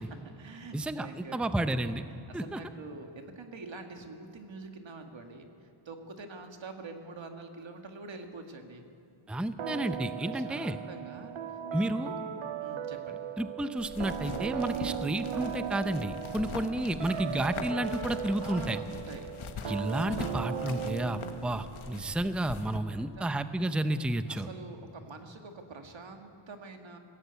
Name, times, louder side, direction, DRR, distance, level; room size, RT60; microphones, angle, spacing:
voice 1, 0.0-1.8 2.1-8.9 10.2-11.6 12.0-12.3 12.6-13.2 16.4-16.7 18.4-19.3 22.9-23.4 24.3-27.0, right 3 dB, 65° right, 5 dB, 1.9 m, -46 dB
voice 2, 0.7-1.1 1.3-2.0 2.3-2.6 9.3-10.8 11.7-12.1 13.4-18.8 19.7-24.5, right 1 dB, ahead, 10 dB, 0.5 m, -31 dB
sound 1, 9.6-22.0, right 9 dB, 85° right, 0.8 m, -37 dB
sound 2, 13.8-22.8, left 5 dB, 80° left, 1.3 m, -43 dB
20.5 x 16.0 x 8.2 m, 2.6 s
wide cardioid pair, 140°, 48 cm